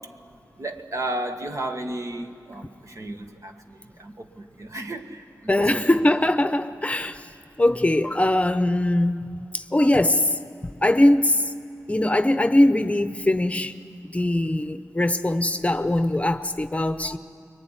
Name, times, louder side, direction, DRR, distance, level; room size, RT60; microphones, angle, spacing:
voice 1, 0.6-5.9, right 1 dB, 60° right, 4 dB, 1.9 m, -33 dB
voice 2, 5.5-7.3 7.6-11.4 11.9-13.7 14.0-17.2, left 1 dB, 20° left, 11 dB, 0.8 m, -21 dB
25.5 x 23.0 x 10.0 m, 2.5 s
wide cardioid pair, 80°, 6 cm